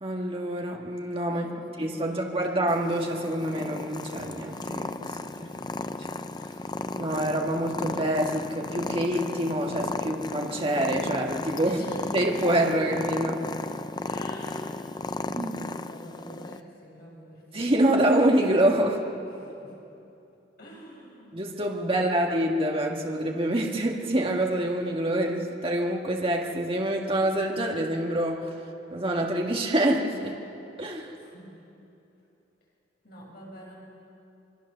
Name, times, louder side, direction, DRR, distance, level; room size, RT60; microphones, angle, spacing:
voice 1, 0.0-1.5 1.8-5.3 7.0-11.8 12.1-13.4 15.4-15.6 17.5-19.0 21.3-28.5 28.9-30.4 30.8-31.1, right 1 dB, 30° right, 0 dB, 1.8 m, -26 dB
voice 2, 1.3-2.6 5.2-5.7 11.6-12.1 14.1-18.0 19.3-19.7 20.6-21.4 21.8-22.4 31.2-31.5 33.0-33.8, equal, 60° left, -3 dB, 6.7 m, -46 dB
Purr, 2.7-16.6, left 3 dB, 25° left, 0.5 m, -35 dB
26.5 x 22.5 x 6.9 m, 2.8 s
head